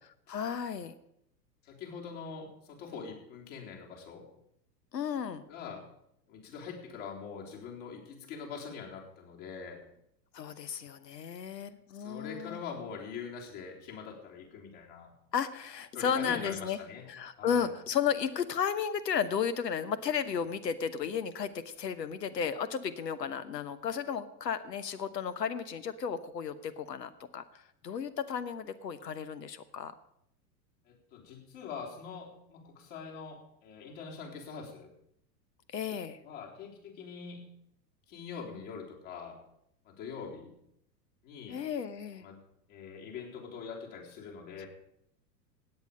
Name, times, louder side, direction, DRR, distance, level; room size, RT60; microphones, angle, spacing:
voice 1, 0.3-0.9 4.9-5.4 10.3-12.6 15.3-16.8 17.1-27.4 27.8-29.9 35.7-36.2 41.5-42.2 44.6-44.7, left 7 dB, 75° left, 13 dB, 1.1 m, -33 dB
voice 2, 1.6-4.2 5.5-5.8 6.3-9.8 12.0-15.1 15.9-17.1 17.4-17.7 30.9-34.9 36.2-37.4 38.1-39.4 39.8-40.5 41.2-41.6 42.2-42.4 42.7-44.7, left 6 dB, 50° left, -2 dB, 3.9 m, -43 dB
16.5 x 8.8 x 5.3 m, 0.76 s
figure-of-eight pair, 100°, 50 cm